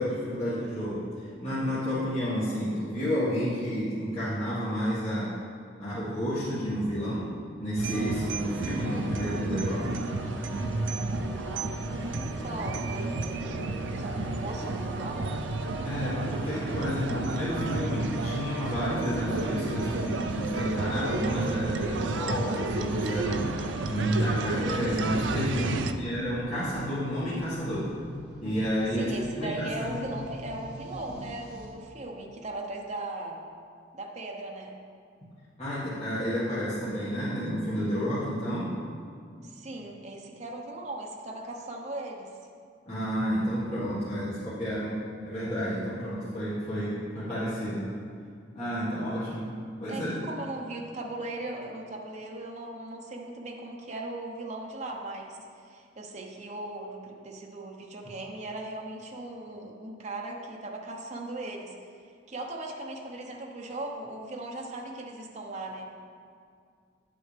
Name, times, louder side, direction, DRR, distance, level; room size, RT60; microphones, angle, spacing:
voice 1, 0.0-5.3 5.8-7.3 7.6-9.9 15.8-27.9 28.4-29.9 35.6-38.7 42.9-47.9 48.5-49.5 49.8-50.2, equal, 35° left, -12 dB, 1.7 m, -31 dB
sound 1, 7.8-25.9, right 3 dB, 75° right, 0.4 m, -31 dB
Organ, 7.9-23.9, left 1 dB, 10° left, 0.8 m, -43 dB
voice 2, 12.1-15.3 25.7-26.1 28.9-33.4 33.9-34.8 39.4-42.3 49.9-61.8 62.3-65.9, right 2 dB, 40° right, 0 dB, 0.9 m, -38 dB
sound 2, 24.8-31.7, equal, 5° right, 1.8 m, -43 dB
9.8 x 7.6 x 3.4 m, 2.3 s
head